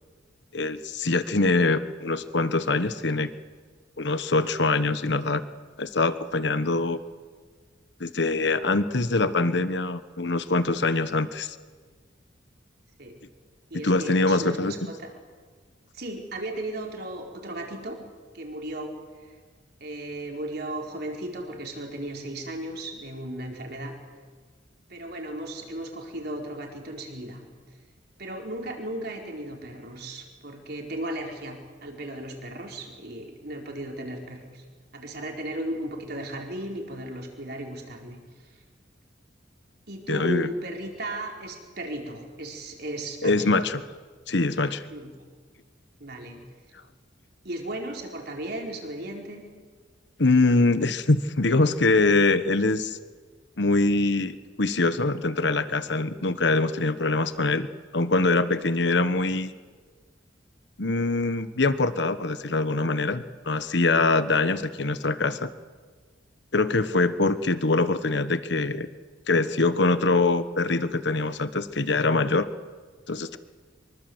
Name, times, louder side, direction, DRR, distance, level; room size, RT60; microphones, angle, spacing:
voice 1, 0.5-3.3 4.0-5.4 5.8-7.0 8.0-11.6 13.8-14.7 40.1-40.5 43.2-43.8 44.3-44.8 50.2-53.0 53.6-57.7 57.9-59.5 60.8-65.5 66.5-68.9 69.3-72.5 73.1-73.4, left 3 dB, 65° left, 12 dB, 1.2 m, -23 dB
voice 2, 13.7-15.1 15.9-18.0 18.3-19.3 19.8-24.0 24.9-27.5 28.2-34.6 34.9-38.2 39.9-43.5 44.9-45.2 46.0-46.4 47.4-49.5, right 1 dB, 55° right, 1 dB, 4.4 m, -36 dB
24.5 x 23.5 x 8.0 m, 1.5 s
head